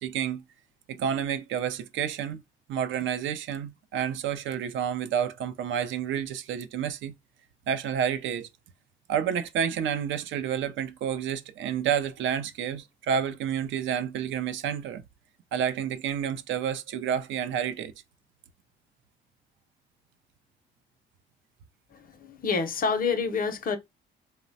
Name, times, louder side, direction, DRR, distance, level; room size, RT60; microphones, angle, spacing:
voice 1, 0.0-0.4 0.9-2.4 2.7-7.1 7.7-8.5 9.1-15.0 15.5-17.9, right 8 dB, 75° right, 0.4 m, -29 dB
voice 2, 21.9-23.8, left 5 dB, 45° left, 0.6 m, -28 dB
3.1 x 2.1 x 2.6 m
cardioid pair, 90°, 20 cm